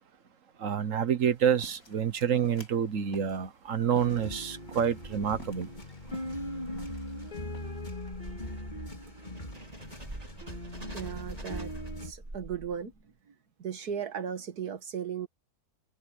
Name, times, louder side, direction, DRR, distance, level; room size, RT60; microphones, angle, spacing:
voice 1, 0.6-5.7, right 8 dB, 60° right, 1.5 m, -28 dB
sound 1, 1.2-7.8, left 1 dB, 65° left, 7.9 m, -52 dB
sound 2, 4.0-12.1, left 1 dB, 30° left, 4.4 m, -40 dB
sound 3, 4.7-13.0, right 1 dB, 25° right, 2.9 m, -46 dB
voice 2, 10.9-11.7 12.0-12.9 13.6-15.3, right 8 dB, 85° right, 2.1 m, -36 dB
omnidirectional pair, 1.6 m